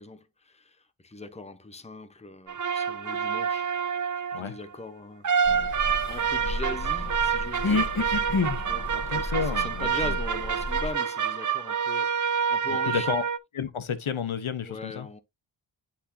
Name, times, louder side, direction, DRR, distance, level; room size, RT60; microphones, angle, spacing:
voice 1, 0.0-3.7 4.3-5.8 6.1-8.3 8.6-13.1 14.6-15.2, left 2 dB, 15° left, 0.8 m, -40 dB
sound 1, 2.5-4.5 5.2-13.4, right 7 dB, 40° right, 0.5 m, -28 dB
sound 2, 5.4-10.9, left 3 dB, 45° left, 1.7 m, -31 dB
voice 2, 9.1-10.2 12.8-13.2 13.5-15.1, left 6 dB, 80° left, 0.9 m, -31 dB
9.7 x 4.3 x 2.6 m
wide cardioid pair, 60°, 49 cm